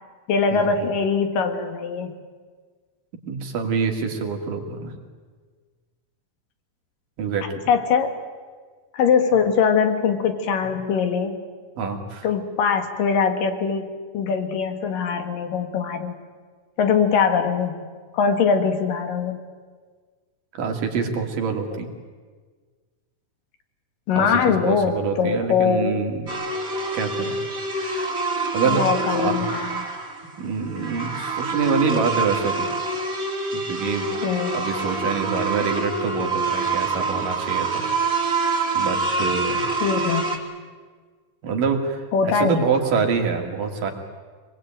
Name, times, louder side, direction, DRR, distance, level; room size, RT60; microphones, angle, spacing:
voice 1, 0.3-2.1 7.7-8.2 8.9-11.4 12.2-16.1 16.8-17.8 18.1-19.4 24.1-26.0 28.7-29.9 34.2-34.7 39.8-40.4 42.1-42.7, left 6 dB, 85° left, 6 dB, 3.6 m, -22 dB
voice 2, 3.3-4.9 7.2-7.6 11.8-12.3 20.5-21.9 24.2-26.4 26.9-27.4 27.7-28.2 28.5-28.8 29.1-29.5 30.4-32.7 33.5-34.1 34.5-37.8 38.7-39.7 41.4-43.9, right 5 dB, 80° right, 3 dB, 4.0 m, -26 dB
sound 1, 26.3-40.4, right 3 dB, 30° right, 2.6 m, -26 dB
25.0 x 21.0 x 9.0 m, 1.5 s
omnidirectional pair, 3.8 m